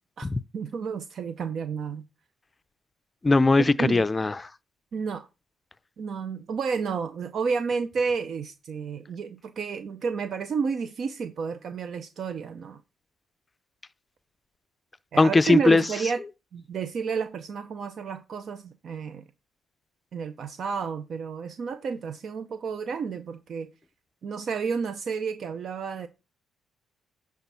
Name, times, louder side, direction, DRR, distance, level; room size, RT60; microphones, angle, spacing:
voice 1, 0.5-2.0 3.8-4.0 4.9-5.3 6.0-12.8 15.1-16.2 16.5-19.2 20.1-23.7 24.2-26.1, right 5 dB, 55° right, 0.6 m, -31 dB
voice 2, 3.2-4.5 15.2-15.8, left 3 dB, 20° left, 0.5 m, -20 dB
10.0 x 3.6 x 5.6 m
cardioid pair, 90°, 0 cm